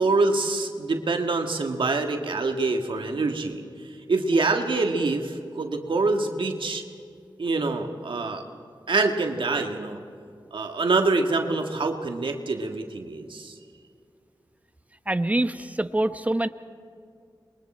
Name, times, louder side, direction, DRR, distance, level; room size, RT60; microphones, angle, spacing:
voice 1, 0.0-3.6 4.1-6.8 7.4-8.4 8.9-10.0 10.5-13.5, right 3 dB, 80° right, 4 dB, 1.7 m, -25 dB
voice 2, 15.1-16.5, right 1 dB, 15° right, 10 dB, 1.0 m, -25 dB
27.5 x 22.5 x 4.3 m, 2.4 s
wide cardioid pair, 60°, 8 cm